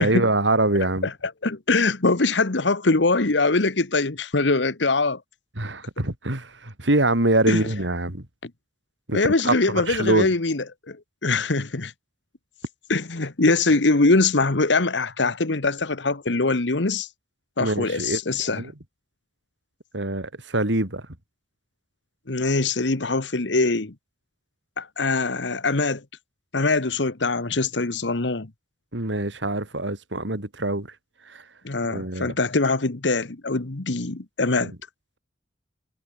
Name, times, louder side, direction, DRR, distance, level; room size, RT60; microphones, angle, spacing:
voice 1, 0.0-1.1 5.6-8.3 9.1-9.2 9.4-9.5 9.9-10.3 17.6-18.2 18.5-18.7 19.9-21.0 28.9-30.9 31.3-31.4 31.9-32.3 34.6-34.7, right 2 dB, 85° right, 3.8 m, -24 dB
voice 2, 0.8-5.2 7.5-7.7 8.4-8.5 9.1-11.9 12.9-17.1 17.6-18.6 22.3-23.9 24.8-26.0 26.5-28.5 31.6-34.7, left 3 dB, 80° left, 1.4 m, -23 dB
head